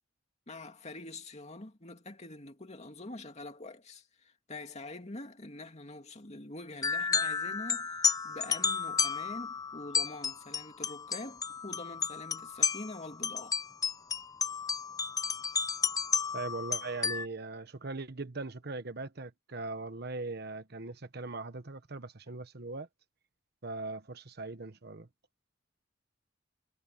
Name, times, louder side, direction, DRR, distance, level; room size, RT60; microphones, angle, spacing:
voice 1, 0.5-13.6, left 2 dB, 35° left, 2.5 m, -45 dB
sound 1, 6.8-17.3, left 6 dB, 20° left, 0.4 m, -32 dB
voice 2, 16.3-22.9 23.6-25.1, right 3 dB, 55° right, 1.2 m, -40 dB
head